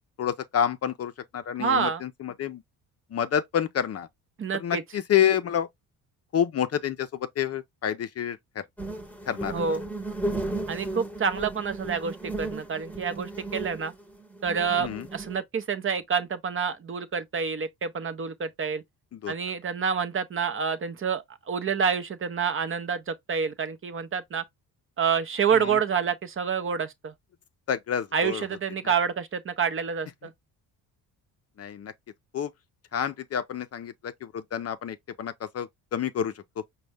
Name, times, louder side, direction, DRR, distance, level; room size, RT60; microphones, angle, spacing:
voice 1, 0.2-2.6 3.1-4.1 4.5-5.7 6.3-8.6 9.3-9.6 14.8-15.1 19.1-19.3 25.5-25.8 27.7-28.4 28.8-28.9 31.6-31.9 32.3-32.5 32.9-36.4, left 9 dB, 40° left, 0.5 m, -28 dB
voice 2, 1.6-2.0 4.4-4.8 9.5-9.8 10.7-13.9 14.4-18.8 19.3-24.4 25.0-27.1 28.1-30.3, right 6 dB, 35° right, 0.6 m, -28 dB
sound 1, 8.8-15.4, right 2 dB, 5° left, 1.0 m, -35 dB
5.1 x 2.2 x 3.3 m
cardioid pair, 85°, 38 cm